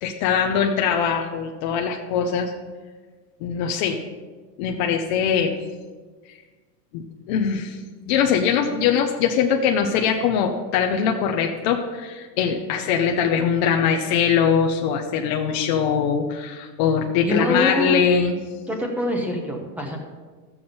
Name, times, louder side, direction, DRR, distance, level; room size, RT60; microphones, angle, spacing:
voice 1, 0.0-2.5 3.4-4.0 4.6-5.5 6.9-7.8 8.1-18.4, left 7 dB, 30° left, 2 dB, 0.5 m, -22 dB
voice 2, 17.2-18.0 18.7-20.0, left 1 dB, 5° right, 2 dB, 0.8 m, -24 dB
13.0 x 7.1 x 5.3 m, 1.4 s
supercardioid pair, 165°, 48 cm